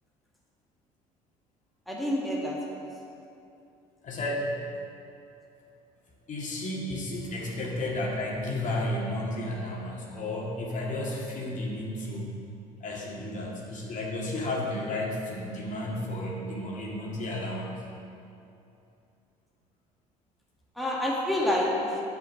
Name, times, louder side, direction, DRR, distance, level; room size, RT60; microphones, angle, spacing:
voice 1, 1.9-2.9 20.8-21.9, left 1 dB, ahead, -4 dB, 1.7 m, -28 dB
voice 2, 4.0-4.5 6.3-12.3 12.8-17.8, left 1 dB, 45° left, -3 dB, 2.1 m, -32 dB
7.6 x 5.8 x 7.0 m, 2.7 s
hypercardioid pair, 65°, 18 cm